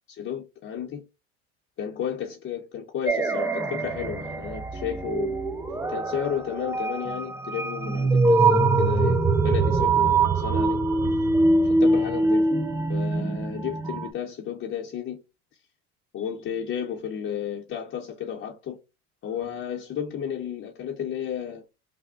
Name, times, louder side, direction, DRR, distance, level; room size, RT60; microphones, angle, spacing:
voice 1, 0.1-1.0 1.8-5.4 5.9-10.8 11.8-12.5 12.9-15.2 16.1-18.8 19.2-21.6, left 8 dB, 40° left, 0.8 m, -33 dB
sound 1, 3.1-14.1, right 3 dB, 10° right, 0.4 m, -23 dB
3.3 x 2.1 x 3.6 m
supercardioid pair, 100°, 33 cm